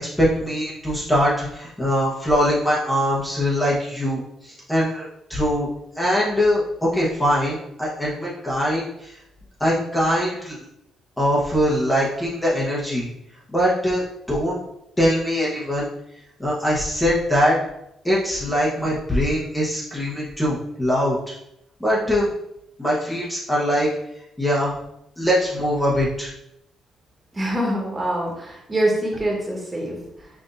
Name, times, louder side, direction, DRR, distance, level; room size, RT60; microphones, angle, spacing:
voice 1, 0.0-5.7 5.9-9.2 9.6-10.6 11.2-13.1 13.5-14.0 14.3-14.6 15.0-15.9 16.4-17.6 18.0-21.3 21.8-22.3 22.8-23.9 24.4-24.7 25.2-26.3, equal, 10° left, -6 dB, 1.1 m, -22 dB
voice 2, 27.3-30.3, right 1 dB, 20° right, -2 dB, 1.4 m, -25 dB
5.8 x 2.7 x 2.6 m, 0.81 s
cardioid pair, 90°, 0 cm